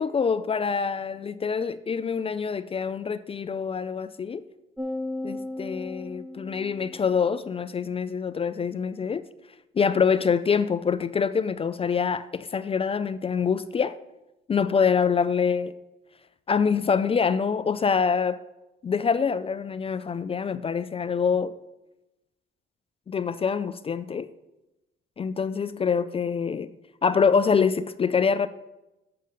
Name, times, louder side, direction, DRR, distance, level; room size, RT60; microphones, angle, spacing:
voice 1, 0.0-4.4 5.2-9.2 9.8-14.0 14.5-15.7 16.5-18.4 18.8-21.5 23.1-24.3 25.2-26.7 27.0-28.5, left 6 dB, 30° left, 0.3 m, -25 dB
sound 1, 4.8-7.3, left 2 dB, ahead, 0.7 m, -35 dB
6.6 x 5.1 x 6.8 m
cardioid pair, 90°, 20 cm